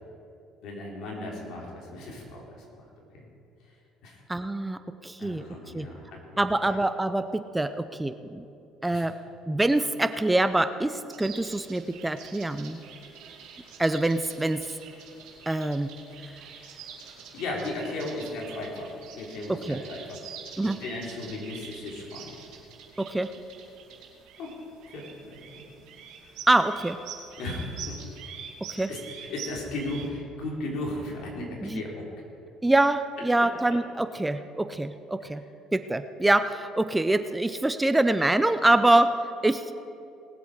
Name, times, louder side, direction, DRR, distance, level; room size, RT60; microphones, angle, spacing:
voice 1, 0.6-2.8 4.0-4.2 5.2-6.4 8.9-9.1 16.5-16.8 17.3-20.3 20.6-22.3 24.4-24.5 24.9-25.6 27.4-28.0 28.7-32.0, left 2 dB, 65° left, -2 dB, 3.5 m, -36 dB
voice 2, 4.3-5.5 5.7-5.9 6.4-8.4 8.8-9.2 9.5-12.8 13.8-14.6 15.5-15.9 19.5-19.8 20.6-20.8 23.0-23.3 26.5-27.0 28.7-28.9 31.6-31.8 32.6-35.4 35.7-39.1 39.4-39.6, right 2 dB, 10° right, 11 dB, 0.6 m, -25 dB
sound 1, 11.1-30.1, right 7 dB, 70° right, 2.5 m, -45 dB
19.5 x 8.0 x 4.9 m, 2.7 s
supercardioid pair, 70°, 0 cm